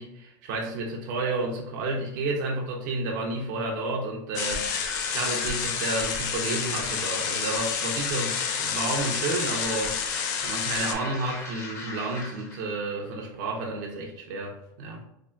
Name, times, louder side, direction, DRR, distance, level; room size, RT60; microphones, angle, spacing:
voice 1, 0.0-10.0 10.4-15.0, right 2 dB, 70° right, 0 dB, 0.6 m, -31 dB
sound 1, 4.3-10.9, left 7 dB, 65° left, 0.4 m, -30 dB
sound 2, 4.4-12.6, left 2 dB, 25° left, 0.7 m, -37 dB
3.3 x 2.1 x 2.4 m, 0.81 s
supercardioid pair, 110°, 11 cm